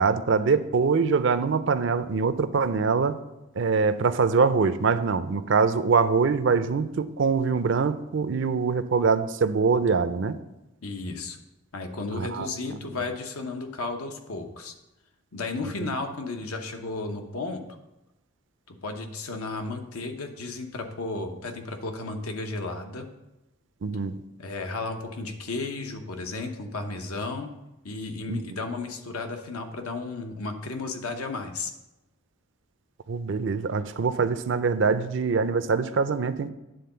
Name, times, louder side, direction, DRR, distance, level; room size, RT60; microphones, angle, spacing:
voice 1, 0.0-3.2 3.6-10.4 12.1-12.5 23.8-24.2 28.3-28.4 33.1-36.5, right 5 dB, 55° right, 12 dB, 0.4 m, -24 dB
voice 2, 10.8-11.4 11.7-14.7 15.3-17.6 18.7-23.1 24.4-27.5 27.8-31.7, left 3 dB, 85° left, 5 dB, 1.0 m, -33 dB
9.4 x 3.8 x 6.7 m, 0.95 s
head